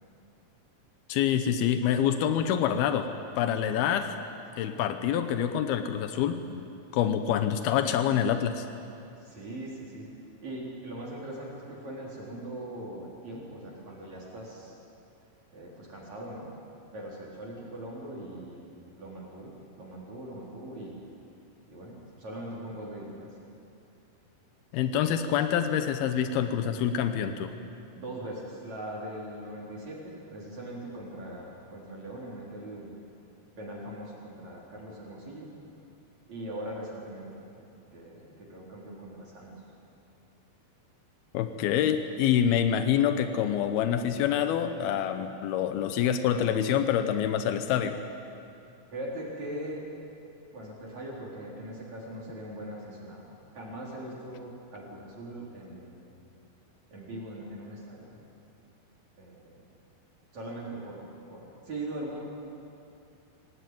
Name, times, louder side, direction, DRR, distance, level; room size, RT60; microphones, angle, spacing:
voice 1, 1.1-3.1 3.4-4.1 4.6-6.7 6.9-8.7 24.7-27.5 41.3-48.0, left 9 dB, 90° left, 8 dB, 2.9 m, -26 dB
voice 2, 9.0-10.1 10.4-14.8 15.5-16.5 16.9-21.0 21.7-23.3 27.9-32.9 33.6-35.5 36.3-37.5 37.9-39.5 48.9-49.8 50.5-53.2 53.5-56.2 56.9-58.2 59.2-59.6 60.3-62.2, right 1 dB, 50° right, -4 dB, 5.3 m, -41 dB
25.5 x 18.0 x 9.3 m, 2.7 s
omnidirectional pair, 4.3 m